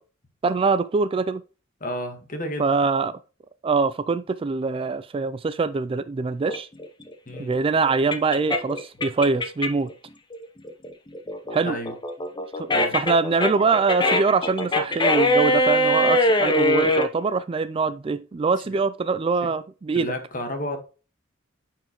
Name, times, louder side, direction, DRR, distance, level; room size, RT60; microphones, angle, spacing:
voice 1, 0.4-1.4 2.6-3.2 3.6-6.7 7.4-9.9 11.5-11.8 12.6-20.1, right 4 dB, 25° right, 0.3 m, -23 dB
voice 2, 1.8-2.7 7.3-7.5 11.6-11.9 12.7-12.9 18.6-18.8 19.4-19.5 19.9-20.8, equal, 40° left, 1.5 m, -31 dB
sound 1, 6.5-9.9 10.3-17.1, left 1 dB, 25° left, 0.8 m, -22 dB
9.0 x 4.7 x 3.0 m
head